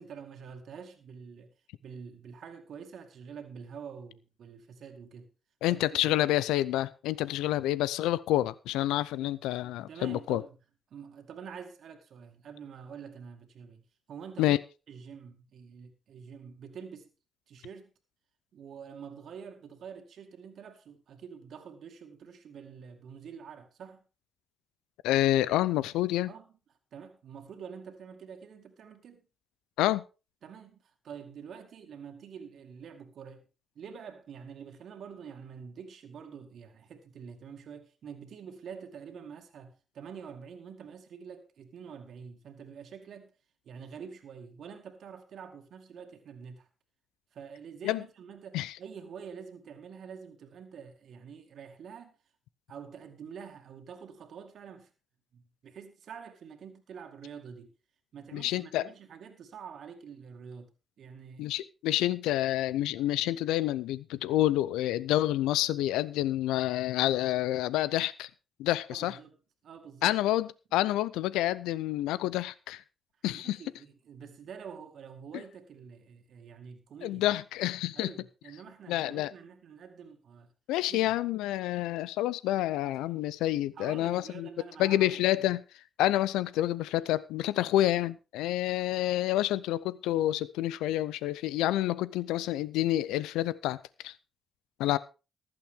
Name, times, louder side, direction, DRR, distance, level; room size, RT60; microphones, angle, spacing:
voice 1, 0.0-1.5 1.8-5.3 5.7-5.9 6.2-6.3 9.2-9.4 9.9-10.6 10.9-14.6 14.9-17.1 17.5-17.9 18.5-24.0 26.3-26.5 26.9-29.2 30.4-33.4 33.8-43.3 43.6-46.7 47.3-52.2 52.7-54.9 55.3-57.7 58.1-60.7 61.0-61.5 68.9-69.4 69.6-70.1 73.3-77.2 77.9-80.5 80.9-81.1 82.8-83.0 83.8-85.5, right 7 dB, 65° right, 2.2 m, -47 dB
voice 2, 5.6-10.4 14.4-14.6 25.0-26.3 29.8-30.0 47.8-48.0 48.5-48.7 58.3-58.8 61.4-68.3 68.6-69.2 70.0-72.8 73.2-73.6 77.0-78.1 78.9-79.3 80.7-84.5 84.8-85.6 86.0-94.1 94.8-95.0, left 14 dB, 80° left, 0.5 m, -28 dB
15.0 x 12.0 x 3.6 m
hypercardioid pair, 45°, 0 cm